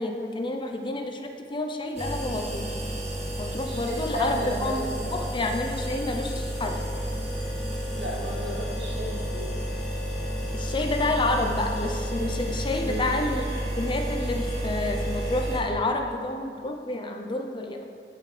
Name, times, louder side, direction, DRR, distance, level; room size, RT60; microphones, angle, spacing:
voice 1, 0.0-2.6 3.4-4.8 5.1-6.8 10.5-13.5 13.8-17.8, left 2 dB, 30° left, 4 dB, 0.6 m, -29 dB
sound 1, 2.0-15.6, equal, 40° right, 1.9 m, -31 dB
voice 2, 3.7-5.4 8.0-9.7 12.8-13.1, equal, 80° right, -4 dB, 2.1 m, -34 dB
15.0 x 5.7 x 3.3 m, 2.2 s
head